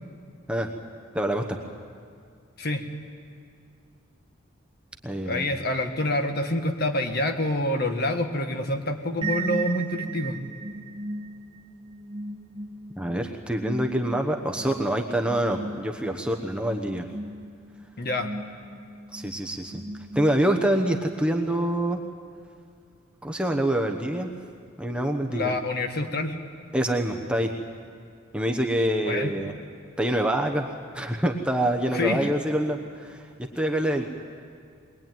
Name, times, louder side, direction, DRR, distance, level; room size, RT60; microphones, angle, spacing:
voice 1, 1.1-1.6 5.0-5.5 13.0-17.1 19.1-19.8 20.1-22.0 23.2-24.3 24.8-25.5 26.7-27.5 28.3-29.5 30.0-30.7 30.9-33.3 33.5-34.1, right 1 dB, 5° right, 3 dB, 1.0 m, -26 dB
voice 2, 5.2-10.4 18.0-18.3 25.3-26.3 29.0-29.3 31.9-32.3, left 1 dB, 45° left, 5 dB, 1.6 m, -27 dB
sound 1, 9.2-20.8, right 2 dB, 25° right, 1.2 m, -37 dB
22.0 x 22.0 x 9.2 m, 2.3 s
head